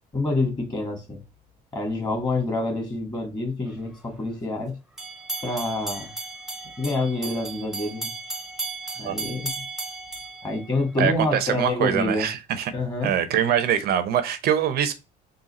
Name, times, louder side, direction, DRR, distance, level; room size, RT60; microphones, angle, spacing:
voice 1, 0.1-1.2 1.7-4.8 5.4-6.1 6.8-8.1 9.0-9.6 10.4-12.3 12.7-13.1, left 2 dB, 25° left, 1.6 m, -27 dB
sound 1, 5.0-11.2, right 2 dB, 5° right, 0.9 m, -35 dB
voice 2, 11.0-12.7 13.0-14.9, right 9 dB, 65° right, 0.7 m, -23 dB
3.9 x 2.3 x 4.1 m
cardioid pair, 110°, 17 cm